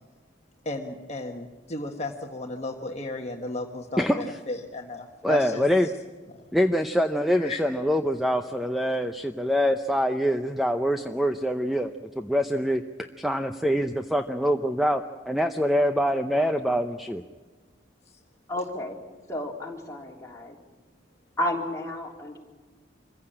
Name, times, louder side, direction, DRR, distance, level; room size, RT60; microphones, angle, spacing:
voice 1, 0.6-5.6 6.3-6.5 7.4-7.6, left 2 dB, 35° left, 2 dB, 1.3 m, -34 dB
voice 2, 4.0-4.4 5.2-5.9 6.5-11.9 12.2-12.8 13.2-17.2, equal, ahead, 6 dB, 0.6 m, -25 dB
voice 3, 18.5-19.0 19.3-20.6 21.4-22.4, left 1 dB, 15° left, -2 dB, 3.4 m, -31 dB
26.0 x 15.5 x 8.8 m, 1.4 s
head